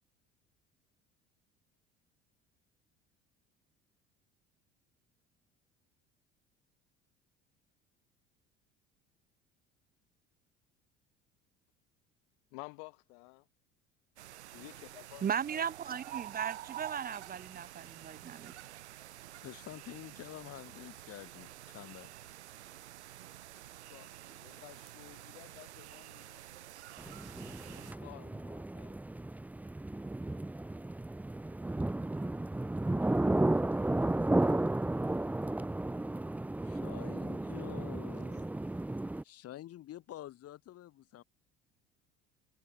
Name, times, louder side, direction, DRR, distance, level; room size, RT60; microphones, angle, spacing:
voice 1, 12.5-13.5 14.5-16.0 23.9-26.7 27.6-29.0, left 40 dB or more, 60° left, 5.4 m, -53 dB
sound 1, 14.2-27.9, right 13 dB, 75° right, 0.9 m, -48 dB
voice 2, 15.2-18.5, right 8 dB, 25° right, 0.9 m, -37 dB
voice 3, 19.4-22.1 36.6-38.8 39.2-41.2, left 13 dB, 45° left, 2.4 m, -48 dB
sound 2, 27.0-39.2, right 2 dB, 5° right, 0.6 m, -33 dB
figure-of-eight pair, 60°, 34 cm